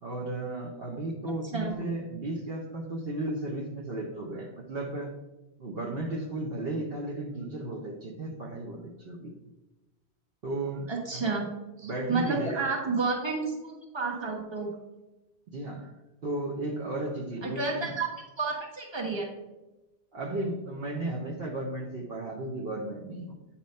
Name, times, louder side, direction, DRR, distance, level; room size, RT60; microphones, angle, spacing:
voice 1, 0.0-5.1 5.6-9.3 10.4-11.3 11.8-12.7 15.5-15.9 16.2-18.0 20.1-23.4, right 2 dB, 65° right, -1 dB, 1.1 m, -34 dB
voice 2, 10.9-11.5 11.8-14.7 17.4-18.1 18.4-19.3, right 4 dB, 25° right, -1 dB, 1.3 m, -30 dB
8.5 x 3.0 x 5.3 m, 1.1 s
omnidirectional pair, 1.1 m